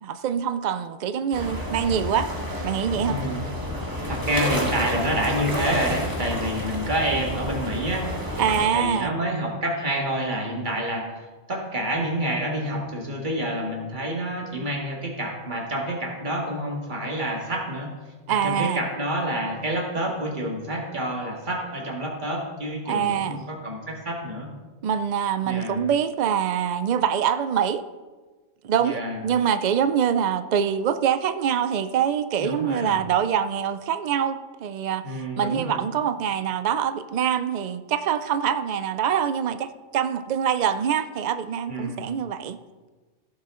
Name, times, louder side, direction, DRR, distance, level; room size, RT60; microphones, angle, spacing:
voice 1, 0.0-2.3 2.6-3.2 8.4-9.1 18.3-18.8 22.9-23.4 24.8-27.8 28.6-42.6, right 8 dB, 90° right, 12 dB, 0.3 m, -24 dB
sound 1, 1.3-8.7, equal, 15° right, 1.5 m, -30 dB
voice 2, 3.1-3.4 4.1-8.1 8.7-11.1 11.5-17.9 18.3-24.5 25.4-25.8 28.8-29.2 32.4-33.0 35.0-35.8 41.7-42.0, right 1 dB, 40° right, -1 dB, 2.0 m, -28 dB
16.0 x 7.2 x 3.7 m, 1.3 s
omnidirectional pair, 1.3 m